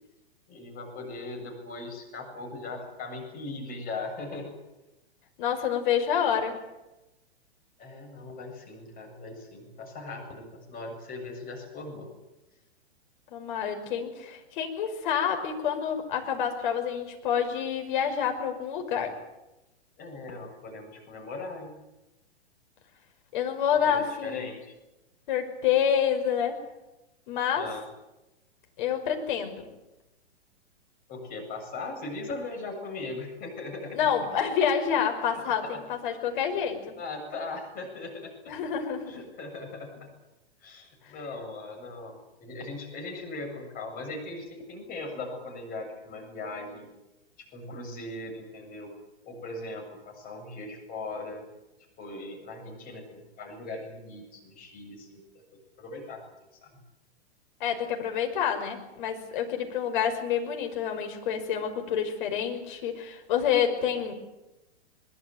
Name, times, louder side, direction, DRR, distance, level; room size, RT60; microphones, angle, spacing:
voice 1, 0.5-4.6 7.8-12.1 20.0-21.8 23.9-24.7 27.5-27.8 31.1-34.0 35.3-35.8 37.0-38.6 39.1-40.1 40.6-46.9 47.4-48.9 49.2-51.4 52.0-55.2 55.8-56.8, left 3 dB, 25° left, 2 dB, 7.8 m, -39 dB
voice 2, 5.4-6.6 13.3-19.2 23.3-24.5 25.3-26.6 27.3-27.7 28.8-29.7 33.9-37.0 38.5-39.2 41.0-41.1 57.6-64.1, left 8 dB, 45° left, 4 dB, 5.6 m, -28 dB
22.5 x 22.0 x 9.3 m, 0.98 s
figure-of-eight pair, 110°, 33 cm